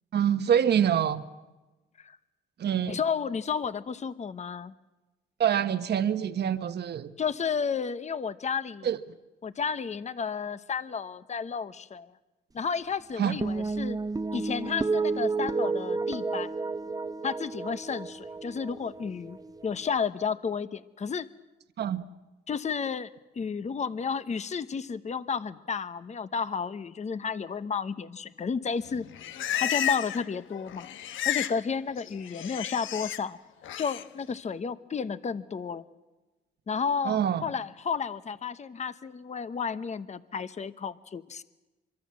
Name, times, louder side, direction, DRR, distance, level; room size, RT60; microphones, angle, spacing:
voice 1, 0.1-1.2 2.6-3.0 5.4-7.1 8.8-9.0 13.2-13.4 21.8-22.0 37.0-37.4, right 9 dB, 55° right, 10 dB, 1.2 m, -25 dB
voice 2, 2.9-4.7 7.2-8.9 9.4-12.1 12.5-14.0 14.3-16.5 17.2-19.4 19.6-21.3 22.5-23.1 23.4-29.0 29.6-30.9 31.2-33.4 33.8-35.8 36.7-41.4, left 6 dB, 35° left, 13 dB, 1.0 m, -32 dB
sound 1, 13.4-20.0, right 4 dB, 20° right, 0.8 m, -31 dB
Livestock farm animals working animals, 28.9-30.3 30.5-31.6 31.9-33.2 33.6-34.0, left 11 dB, 80° left, 1.2 m, -32 dB
25.0 x 23.5 x 7.6 m, 1.1 s
cardioid pair, 90°, 20 cm